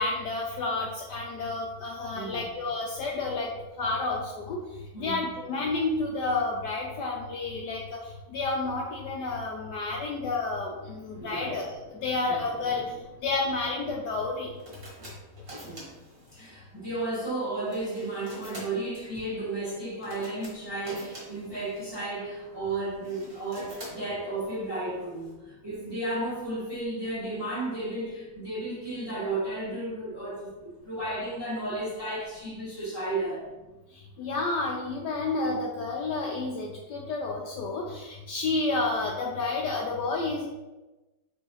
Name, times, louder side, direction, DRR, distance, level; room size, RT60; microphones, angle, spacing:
voice 1, 0.0-3.5 3.8-4.6 5.0-8.0 8.3-12.8 13.2-14.5 34.2-40.5, left 3 dB, 70° left, -1 dB, 1.0 m, -30 dB
voice 2, 2.1-2.5 4.9-5.2 11.1-12.0 12.2-12.9 15.6-16.0 16.3-33.5, right 2 dB, 15° right, -7 dB, 1.1 m, -34 dB
sound 1, 14.1-25.3, equal, 35° right, 1.2 m, -48 dB
4.4 x 3.3 x 3.0 m, 1.1 s
omnidirectional pair, 2.1 m